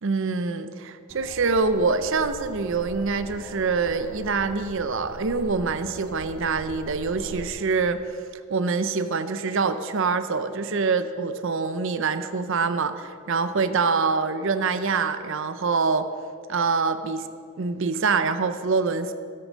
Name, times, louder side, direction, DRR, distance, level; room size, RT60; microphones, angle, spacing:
voice 1, 0.0-8.2 8.5-16.1 16.5-17.3 17.6-19.1, right 4 dB, 55° right, 10 dB, 0.6 m, -25 dB
sound 1, 1.1-7.5, right 1 dB, 85° right, 2.2 m, -41 dB
13.0 x 8.6 x 6.3 m, 2.2 s
head